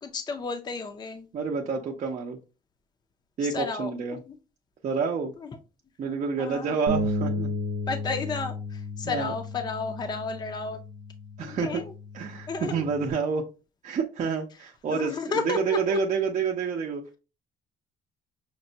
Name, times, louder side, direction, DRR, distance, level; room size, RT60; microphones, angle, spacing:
voice 1, 0.0-1.3 3.4-3.9 4.3-4.4 5.4-5.6 6.4-6.8 7.9-10.8 11.4-11.9 12.5-12.9 14.9-16.0, left 4 dB, 25° left, 6 dB, 0.5 m, -32 dB
voice 2, 1.3-2.4 3.4-4.2 4.8-5.3 6.0-7.5 9.0-9.3 11.4-11.8 12.1-13.4 13.8-15.2 15.4-17.0, right 5 dB, 45° right, 0 dB, 0.6 m, -28 dB
Bass guitar, 6.9-13.1, left 1 dB, 80° right, 0.7 m, -33 dB
5.8 x 2.1 x 2.7 m, 0.31 s
cardioid pair, 110°, 17 cm